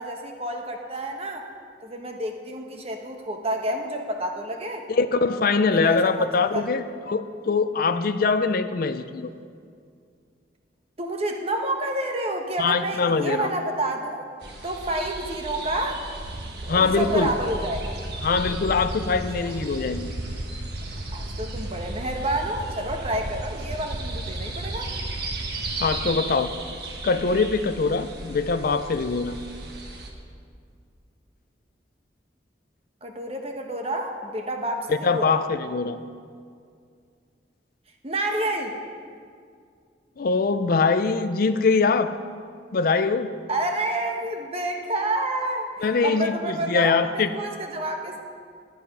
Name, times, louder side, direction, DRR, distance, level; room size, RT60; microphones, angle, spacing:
voice 1, 0.0-1.5 1.8-4.9 5.7-6.6 11.0-14.2 14.6-16.0 16.6-17.9 19.4-19.6 21.1-24.9 33.0-35.4 38.0-38.8 43.5-48.2, right 1 dB, 35° right, 3 dB, 1.1 m, -29 dB
voice 2, 4.9-9.3 12.6-13.5 16.7-17.3 18.2-20.1 25.8-26.5 27.0-29.4 34.9-36.0 40.2-42.1 42.7-43.3 45.8-47.3, left 4 dB, 50° left, 11 dB, 0.4 m, -23 dB
sound 1, 14.4-30.1, right 2 dB, 60° right, 1.4 m, -37 dB
sound 2, 16.2-25.8, right 1 dB, 80° right, 0.8 m, -35 dB
12.0 x 9.3 x 5.4 m, 2.3 s
head